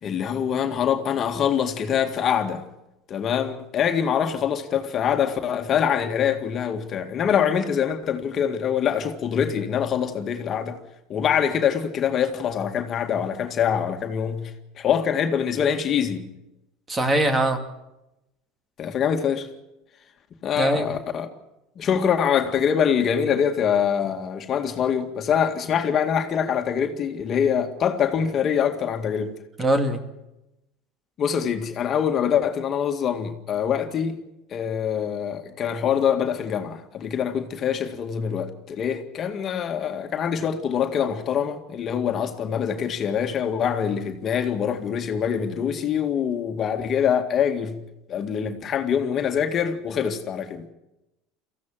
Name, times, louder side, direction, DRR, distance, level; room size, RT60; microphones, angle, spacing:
voice 1, 0.0-2.6 3.1-10.8 11.1-16.3 18.8-19.5 20.4-21.3 21.8-29.3 31.2-34.2 34.5-47.7 48.1-50.7, left 8 dB, 40° left, 2.0 m, -24 dB
voice 2, 16.9-17.6 20.6-20.9 29.6-30.0, right 1 dB, 20° right, 2.4 m, -21 dB
23.0 x 15.5 x 7.5 m
supercardioid pair, 105°, 0 cm